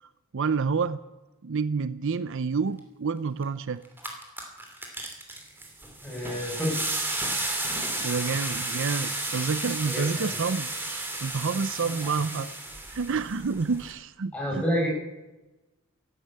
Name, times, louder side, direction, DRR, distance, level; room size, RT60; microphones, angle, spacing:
voice 1, 0.3-1.0 1.4-3.8 8.0-12.5 12.9-14.6, right 5 dB, 60° right, 15 dB, 0.6 m, -29 dB
sound 1, 3.4-3.5 3.8-13.9, right 2 dB, 10° right, 2.8 m, -33 dB
voice 2, 6.0-7.0 9.8-10.3 12.3-12.4 14.3-14.9, equal, 5° left, -3 dB, 6.0 m, -29 dB
14.0 x 12.0 x 8.5 m, 1.1 s
head